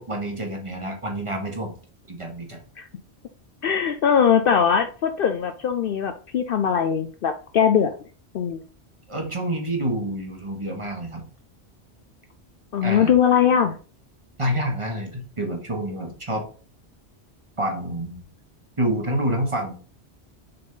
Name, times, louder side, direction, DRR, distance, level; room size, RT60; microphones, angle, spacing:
voice 1, 0.0-1.7 2.1-2.6 9.1-11.3 12.8-13.1 14.4-16.5 17.6-18.2 18.8-19.7, right 1 dB, 25° right, 2 dB, 1.3 m, -28 dB
voice 2, 3.6-7.9 8.3-8.6 12.7-13.7, left 8 dB, 60° left, 8 dB, 0.6 m, -20 dB
6.5 x 4.1 x 3.8 m, 0.38 s
omnidirectional pair, 1.2 m